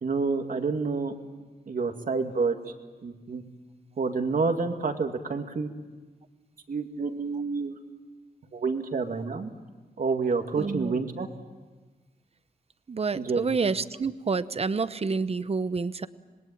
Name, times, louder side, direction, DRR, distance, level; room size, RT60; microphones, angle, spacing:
voice 1, 0.0-1.1 1.7-2.6 3.0-3.4 4.0-5.7 6.7-7.8 8.5-9.5 10.0-11.3 13.1-13.4, right 4 dB, 60° right, 6 dB, 2.2 m, -28 dB
voice 2, 10.5-10.9 12.9-16.1, right 4 dB, 40° right, 14 dB, 0.9 m, -28 dB
26.5 x 20.0 x 9.0 m, 1.3 s
cardioid pair, 80°, 16 cm